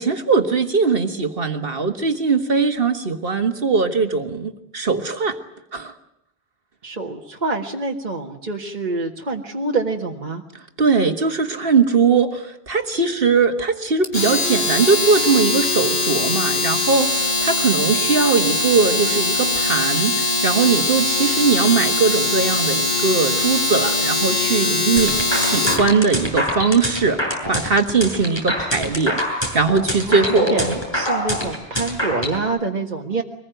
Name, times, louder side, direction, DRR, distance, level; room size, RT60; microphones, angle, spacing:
voice 1, 0.0-5.4 5.7-5.9 10.8-30.8, right 4 dB, 65° right, 8 dB, 1.8 m, -20 dB
voice 2, 6.8-10.4 24.6-24.9 30.1-33.2, right 3 dB, 45° right, 1 dB, 1.8 m, -26 dB
Domestic sounds home sounds, 14.0-25.9, left 2 dB, 75° left, 2.9 m, -21 dB
sound 1, 25.0-32.4, equal, 25° left, 6.6 m, -24 dB
24.0 x 20.5 x 9.1 m, 0.83 s
omnidirectional pair, 1.0 m